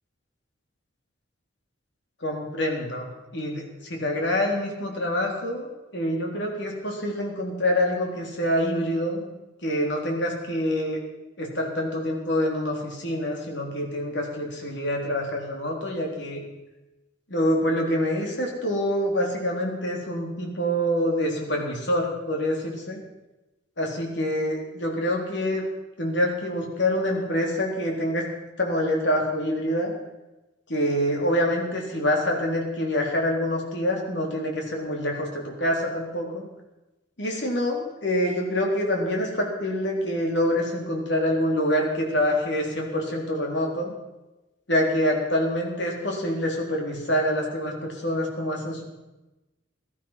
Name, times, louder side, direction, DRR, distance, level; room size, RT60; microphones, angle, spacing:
voice 1, 2.2-9.3 9.6-11.0 11.4-16.4 17.3-23.0 23.8-25.7 26.0-28.2 28.6-29.9 30.7-36.4 37.2-43.9 44.7-48.8, equal, 65° left, 0 dB, 3.7 m, -26 dB
17.5 x 13.0 x 5.8 m, 1.0 s
head